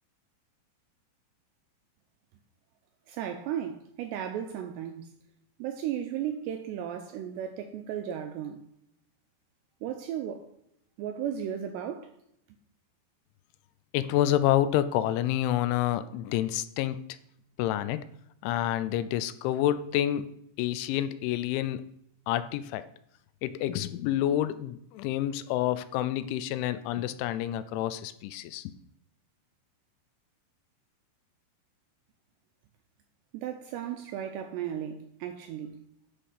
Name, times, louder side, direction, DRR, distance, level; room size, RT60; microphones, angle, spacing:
voice 1, 3.1-5.1 5.6-8.6 9.8-10.5 11.0-12.1 33.3-35.8, right 9 dB, 85° right, 2.5 m, -35 dB
voice 2, 13.9-17.0 17.6-18.0 18.4-21.8 22.3-22.9 23.4-28.7, left 12 dB, 85° left, 2.9 m, -28 dB
10.0 x 5.1 x 5.6 m
omnidirectional pair, 5.5 m